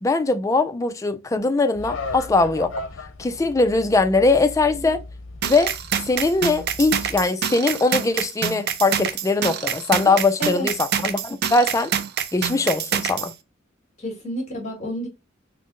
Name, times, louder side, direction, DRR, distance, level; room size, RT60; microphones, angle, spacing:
voice 1, 0.0-2.7 3.2-5.0 5.4-5.7 6.0-11.9 12.3-13.3, left 3 dB, 15° left, 0.3 m, -21 dB
sound 1, 1.7-7.2, left 3 dB, 70° left, 0.7 m, -36 dB
sound 2, 5.4-13.3, right 8 dB, 55° right, 0.4 m, -26 dB
voice 2, 10.0-10.7 14.0-15.1, equal, 35° left, 1.6 m, -30 dB
3.7 x 2.0 x 3.7 m
head